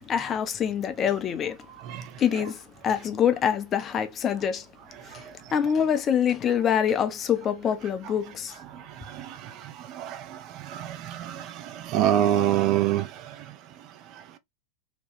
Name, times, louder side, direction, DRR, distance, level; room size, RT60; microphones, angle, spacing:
voice 1, 0.0-1.6 2.2-4.7 5.1-8.6, left 8 dB, 25° left, 0.5 m, -25 dB
voice 2, 8.7-13.4, right 11 dB, 40° right, 0.4 m, -27 dB
2.9 x 2.2 x 3.0 m
figure-of-eight pair, 90°, 0 cm